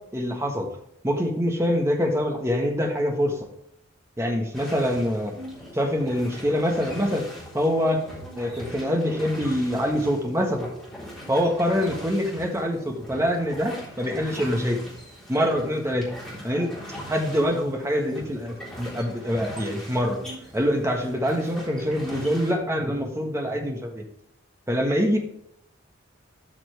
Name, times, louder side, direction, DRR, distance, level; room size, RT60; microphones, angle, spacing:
voice 1, 0.1-0.7 1.0-3.5 4.2-5.3 5.7-7.3 7.5-8.0 8.3-10.7 11.3-14.8 15.3-16.1 16.4-16.7 17.1-20.2 20.5-24.0 24.7-25.2, equal, 15° right, 2 dB, 1.4 m, -25 dB
sound 1, 4.5-22.5, equal, 5° left, 3.6 m, -41 dB
12.5 x 5.9 x 3.3 m, 0.73 s
head